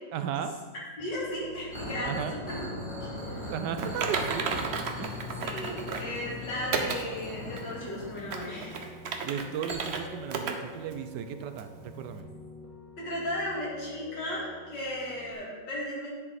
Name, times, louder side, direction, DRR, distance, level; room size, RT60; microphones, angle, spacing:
voice 1, 0.1-0.5 2.1-2.4 3.5-4.5 5.0-5.2 9.2-12.3, right 8 dB, 75° right, 9 dB, 1.2 m, -35 dB
voice 2, 1.0-2.6 3.0-3.5 5.4-8.9 13.0-16.1, left 1 dB, 85° left, -5 dB, 3.0 m, -35 dB
Piano, 1.0-15.3, left 2 dB, 10° left, 1.4 m, -47 dB
sound 1, 1.7-8.7 9.7-9.8, left 1 dB, 55° left, 3.8 m, -40 dB
Typing, 3.8-6.1 6.7-7.0 7.6-7.7 8.2-10.0 10.3-10.5 10.9-11.0 11.6-11.7, right 5 dB, 55° right, 0.8 m, -33 dB
9.7 x 7.3 x 4.1 m, 1.5 s
omnidirectional pair, 1.9 m